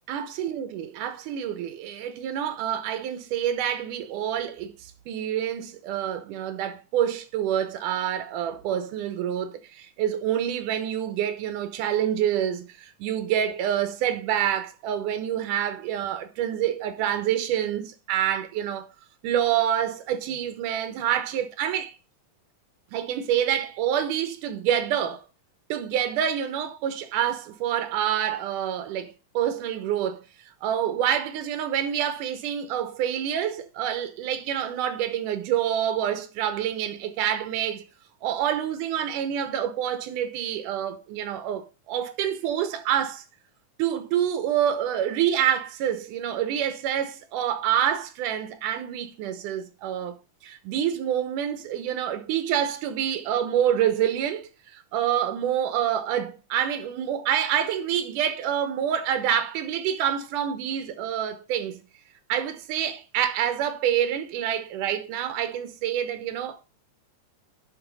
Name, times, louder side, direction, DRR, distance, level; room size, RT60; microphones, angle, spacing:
voice 1, 0.1-18.9 19.2-21.9 22.9-25.2 25.7-30.2 30.6-37.9 38.2-43.2 43.8-50.1 50.4-61.9 62.3-66.6, right 10 dB, 85° right, 2.6 m, -27 dB
11.0 x 4.2 x 5.3 m
omnidirectional pair, 3.6 m